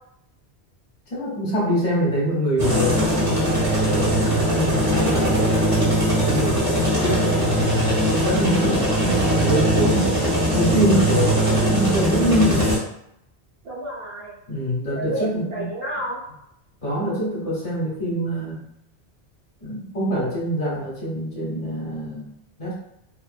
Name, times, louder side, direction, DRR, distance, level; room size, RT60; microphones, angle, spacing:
voice 1, 1.1-5.3 6.2-10.2 10.5-12.7 14.5-15.7 16.8-18.6 19.6-22.3 22.6-22.7, equal, 35° left, -6 dB, 0.9 m, -25 dB
sound 1, 2.6-12.8, right 1 dB, 25° right, 0.7 m, -20 dB
voice 2, 13.6-14.3 14.9-16.2, right 1 dB, 60° right, -6 dB, 0.9 m, -31 dB
2.4 x 2.2 x 2.4 m, 0.79 s
omnidirectional pair, 1.1 m